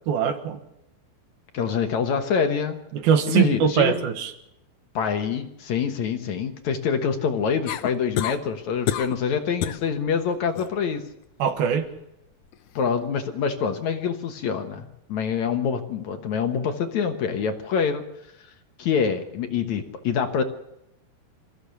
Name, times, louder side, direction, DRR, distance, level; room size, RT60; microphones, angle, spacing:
voice 1, 0.1-0.6 2.9-4.3 11.4-11.9, right 8 dB, 70° right, 8 dB, 3.1 m, -22 dB
voice 2, 1.5-2.8 3.3-4.0 4.9-11.0 12.8-18.0 18.8-20.4, left 6 dB, 60° left, 6 dB, 2.0 m, -25 dB
sound 1, 7.7-8.4 8.9-9.2 9.6-9.9 10.3-10.7 12.5-12.6, left 11 dB, 85° left, 1.7 m, -28 dB
27.0 x 15.0 x 6.9 m, 0.84 s
omnidirectional pair, 4.8 m